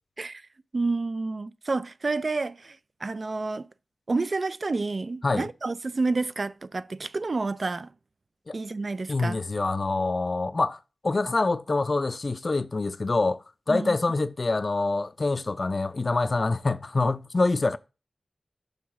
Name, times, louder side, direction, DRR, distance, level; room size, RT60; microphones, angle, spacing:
voice 1, 0.7-3.7 4.1-7.9 8.5-9.4 13.7-14.0, right 3 dB, 50° right, 0.3 m, -29 dB
voice 2, 9.1-10.8 11.0-17.8, left 3 dB, 45° left, 0.5 m, -26 dB
6.6 x 3.4 x 5.8 m
wide cardioid pair, 80°, 0 cm